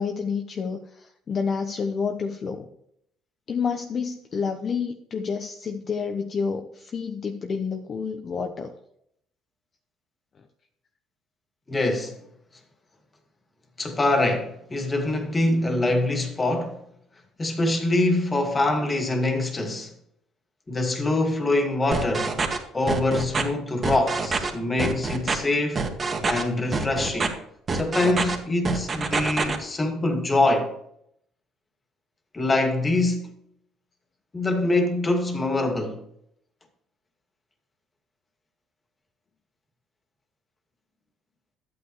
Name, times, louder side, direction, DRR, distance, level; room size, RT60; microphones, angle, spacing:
voice 1, 0.0-2.7 3.5-8.7, left 5 dB, 45° left, 0.9 m, -29 dB
voice 2, 11.7-12.2 13.8-16.8 17.4-19.9 20.7-22.4 22.7-25.8 26.3-27.4 27.7-30.7 32.3-33.3 34.3-36.0, left 2 dB, 25° left, 2.2 m, -24 dB
sound 1, 21.9-22.6 22.9-23.4 23.8-24.5 24.8-25.3 25.8-26.4 26.7-27.3 27.7-28.4 28.6-29.6, right 4 dB, 35° right, 1.9 m, -25 dB
12.0 x 8.7 x 3.2 m
supercardioid pair, 85°, 0 cm